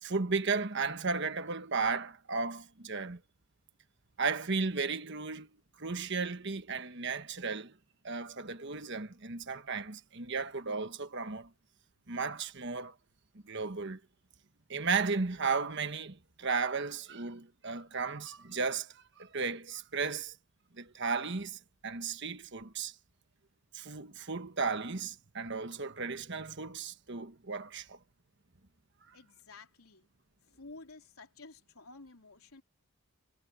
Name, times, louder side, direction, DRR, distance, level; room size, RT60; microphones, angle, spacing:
voice 1, 0.0-3.2 4.2-5.5 5.8-7.7 8.0-11.5 12.1-12.9 13.4-14.0 14.7-20.3 20.8-22.9 23.7-28.0, right 4 dB, 55° right, 1.4 m, -35 dB
voice 2, 29.1-30.1 30.4-32.6, left 3 dB, 80° left, 3.2 m, -52 dB
head